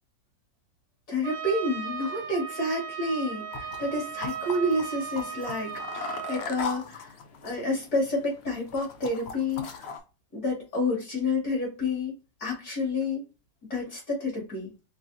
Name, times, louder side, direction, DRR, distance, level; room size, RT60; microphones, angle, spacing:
voice 1, 1.1-7.1 7.4-9.7 10.3-12.1 12.4-13.2 13.6-14.7, left 2 dB, 55° left, -2 dB, 2.7 m, -29 dB
Trumpet, 1.2-6.5, right 7 dB, 65° right, 1.3 m, -37 dB
sound 1, 3.5-10.0, left 5 dB, 80° left, 0.5 m, -39 dB
4.8 x 3.7 x 2.6 m, 0.31 s
omnidirectional pair, 2.0 m